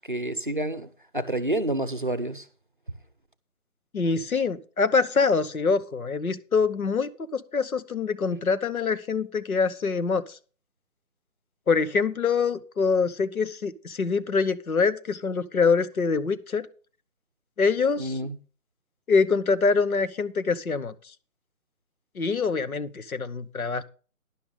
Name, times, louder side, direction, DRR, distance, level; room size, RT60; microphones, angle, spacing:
voice 1, 0.1-2.4 18.0-18.4, right 1 dB, 35° right, 0.6 m, -28 dB
voice 2, 3.9-10.4 11.7-16.7 17.6-18.2 19.1-20.9 22.1-23.8, left 5 dB, 70° left, 1.1 m, -25 dB
11.5 x 10.5 x 3.8 m
figure-of-eight pair, 170°, 45 cm